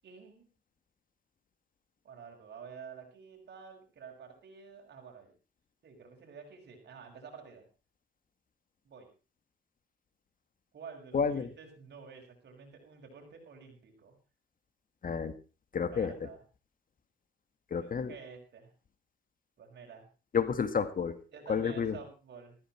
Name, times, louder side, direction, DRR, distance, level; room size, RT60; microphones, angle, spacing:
voice 1, 0.0-0.5 2.0-5.3 5.8-7.6 8.8-9.1 10.7-14.2 15.9-16.4 17.8-18.7 19.6-20.1 21.3-22.6, right 6 dB, 55° right, 2 dB, 6.3 m, -50 dB
voice 2, 11.1-11.5 15.0-15.3 15.7-16.1 17.7-18.1 20.3-21.1 21.5-22.0, left 6 dB, 45° left, 12 dB, 1.8 m, -30 dB
15.0 x 14.0 x 4.4 m, 0.34 s
cardioid pair, 90°, 20 cm